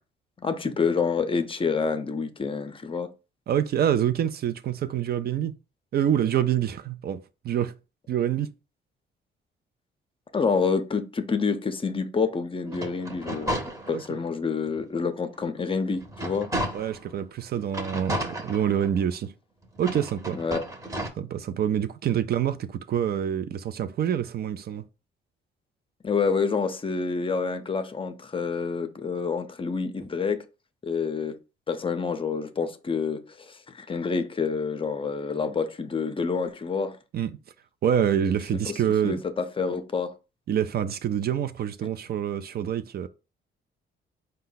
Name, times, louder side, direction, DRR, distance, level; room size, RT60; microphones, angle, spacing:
voice 1, 0.4-3.1 10.3-13.6 13.9-16.5 20.3-20.6 26.0-30.5 30.8-31.4 31.7-37.0 38.7-38.8 39.0-40.1, left 5 dB, 25° left, 0.5 m, -28 dB
voice 2, 3.5-5.5 5.9-7.7 8.1-8.5 13.9-14.2 16.7-19.3 19.8-20.4 21.2-24.8 37.1-37.4 37.8-39.2 40.5-43.1, right 9 dB, 50° right, 0.4 m, -26 dB
sound 1, 12.6-14.3 14.8-14.9 15.3-17.1 17.7-19.2 19.7-21.1, right 1 dB, 15° right, 0.9 m, -33 dB
4.4 x 2.2 x 3.9 m
cardioid pair, 90°, 20 cm